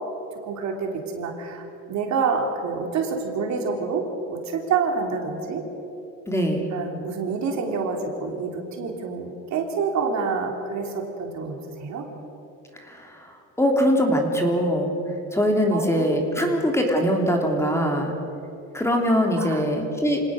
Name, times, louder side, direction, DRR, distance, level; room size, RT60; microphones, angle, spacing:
voice 1, 0.4-5.7 6.7-12.1 15.7-16.0 16.4-16.5 19.4-19.6, right 5 dB, 55° right, 2 dB, 3.5 m, -27 dB
voice 2, 6.3-6.6 12.9-13.2 13.6-14.9 15.3-18.1 18.7-20.2, equal, 10° left, 2 dB, 3.2 m, -22 dB
26.5 x 18.5 x 6.5 m, 2.8 s
cardioid pair, 115°, 32 cm